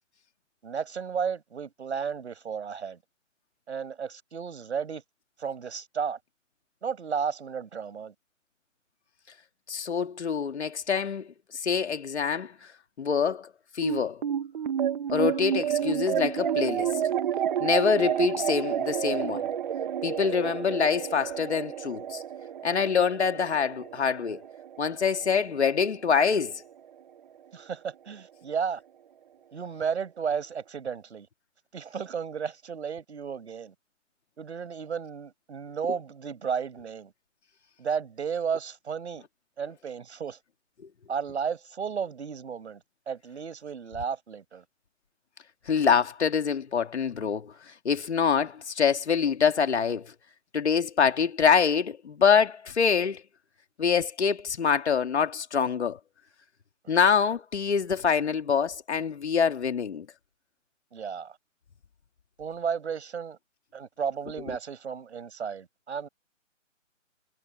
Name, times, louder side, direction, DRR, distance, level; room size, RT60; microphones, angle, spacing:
voice 1, 0.6-3.0 3.7-5.0 5.4-6.2 6.8-8.1 27.5-28.8 29.5-31.3 31.7-33.7 34.4-37.1 37.8-39.3 39.6-40.4 41.1-42.8 43.1-44.6 60.9-61.4 62.4-63.4 63.7-66.1, right 6 dB, 55° right, 6.5 m, -33 dB
voice 2, 9.7-12.7 13.0-13.5 13.7-14.2 15.1-17.0 17.6-19.5 20.0-22.2 22.6-24.4 24.8-26.6 45.7-50.1 50.5-53.2 53.8-56.0 56.9-60.1 64.5-64.6, left 6 dB, 55° left, 2.4 m, -25 dB
sound 1, 13.8-26.4, right 9 dB, 40° right, 2.0 m, -30 dB
figure-of-eight pair, 150°, 39 cm